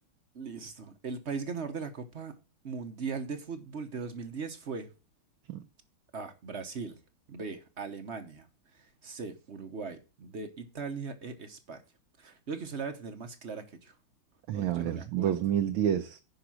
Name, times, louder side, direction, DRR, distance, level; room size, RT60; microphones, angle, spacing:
voice 1, 0.3-2.4 2.6-4.9 6.1-7.0 7.3-8.5 8.7-11.8 12.2-13.9 14.5-15.3, right 5 dB, 45° right, 0.9 m, -39 dB
voice 2, 14.5-16.2, right 10 dB, 80° right, 1.4 m, -29 dB
11.0 x 4.9 x 6.1 m
omnidirectional pair, 2.3 m